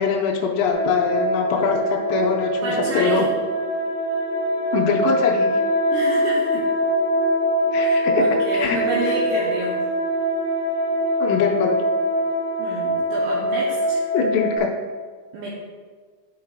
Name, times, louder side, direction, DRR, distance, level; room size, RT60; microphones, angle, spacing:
voice 1, 0.0-3.2 4.7-5.5 7.7-8.2 8.5-8.8 9.0-9.1 11.2-11.8 14.1-14.7, left 6 dB, 90° left, -1 dB, 2.7 m, -22 dB
sound 1, 0.7-14.6, equal, 60° right, 1.9 m, -23 dB
voice 2, 2.6-3.3 5.9-6.6 7.8-9.8 12.6-14.0 15.3-15.5, right 3 dB, 75° right, -5 dB, 2.9 m, -29 dB
13.0 x 4.8 x 2.4 m, 1.5 s
omnidirectional pair, 5.9 m